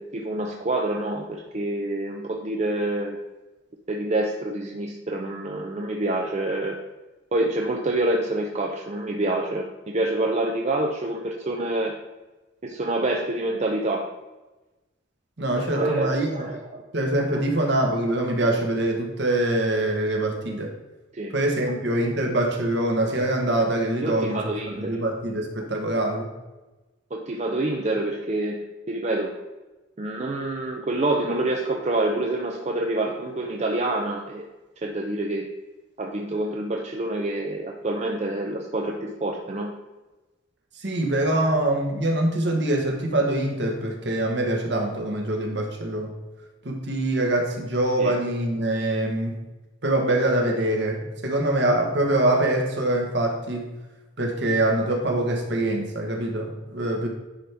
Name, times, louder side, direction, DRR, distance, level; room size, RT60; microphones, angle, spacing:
voice 1, 0.0-3.2 3.9-6.8 7.3-11.9 12.6-14.1 15.5-16.8 17.3-17.4 21.1-21.3 24.0-25.0 27.1-29.3 30.0-34.5 34.8-35.5 36.0-39.7 48.0-48.1, right 2 dB, 35° right, 1 dB, 0.5 m, -27 dB
voice 2, 15.4-16.5 16.9-20.7 21.3-26.3 40.8-46.1 46.6-49.4 49.8-53.7 54.2-57.1, right 1 dB, 55° right, 2 dB, 1.2 m, -24 dB
10.0 x 4.4 x 3.4 m, 1.1 s
head